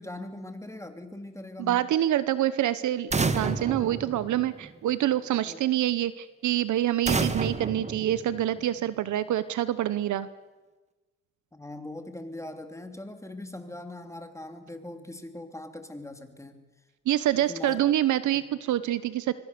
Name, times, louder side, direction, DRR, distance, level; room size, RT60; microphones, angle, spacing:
voice 1, 0.0-1.9 5.5-5.6 11.5-16.7 17.3-17.9 18.3-18.4, left 1 dB, 10° left, 7 dB, 2.7 m, -41 dB
voice 2, 1.6-10.3 17.1-19.3, right 12 dB, 75° right, 15 dB, 1.0 m, -26 dB
sound 1, 3.1-4.9 7.1-8.8, right 3 dB, 20° right, 1.5 m, -30 dB
24.5 x 24.0 x 6.8 m, 1.2 s
cardioid pair, 90°, 30 cm